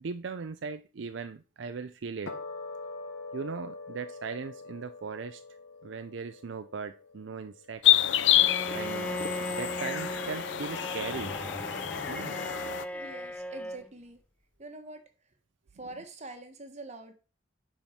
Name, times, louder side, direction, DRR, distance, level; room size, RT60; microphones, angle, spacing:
voice 1, 0.0-2.3 3.3-5.4 5.8-7.8 8.7-9.1 9.5-11.4 12.1-12.4 15.8-15.9, right 5 dB, 70° right, 9 dB, 0.5 m, -38 dB
sound 1, 2.3-8.8, left 3 dB, 85° left, 1.4 m, -44 dB
sound 2, 7.8-12.8, left 12 dB, 65° left, 0.5 m, -27 dB
Bowed string instrument, 8.3-13.9, equal, 5° left, 0.4 m, -38 dB
voice 2, 12.9-14.2 14.6-15.0 15.8-17.1, right 2 dB, 35° right, 6 dB, 1.4 m, -44 dB
8.7 x 4.5 x 5.7 m, 0.34 s
head